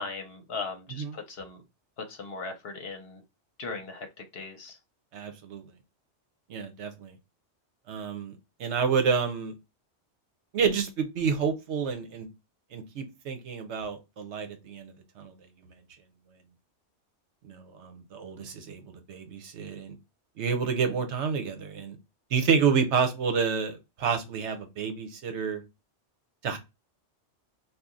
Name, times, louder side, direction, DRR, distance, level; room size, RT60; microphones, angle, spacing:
voice 1, 0.0-1.6 2.0-3.2 3.6-4.1 4.3-4.8, left 4 dB, 60° left, 1.0 m, -38 dB
voice 2, 5.1-5.6 6.5-7.2 7.9-9.5 10.5-12.3 12.7-15.3 17.4-18.8 19.1-20.0 20.4-22.0 22.3-25.6 26.4-26.6, right 6 dB, 70° right, 1.0 m, -29 dB
2.8 x 2.4 x 3.6 m
omnidirectional pair, 1.2 m